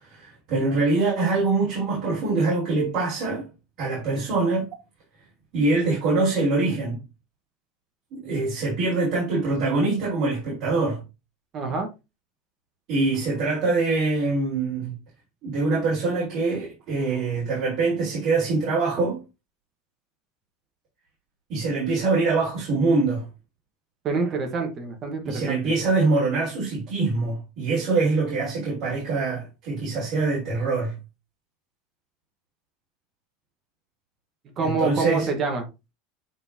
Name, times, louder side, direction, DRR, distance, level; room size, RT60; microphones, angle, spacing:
voice 1, 0.1-3.5 3.8-4.7 5.5-7.0 8.1-11.0 12.9-14.9 15.4-19.2 21.5-23.3 25.2-31.0 34.6-35.3, right 3 dB, 45° right, 4.5 m, -24 dB
voice 2, 11.5-11.9 24.0-25.7 34.6-35.7, right 4 dB, 25° right, 1.4 m, -27 dB
9.7 x 3.9 x 2.9 m
supercardioid pair, 165°, 0 cm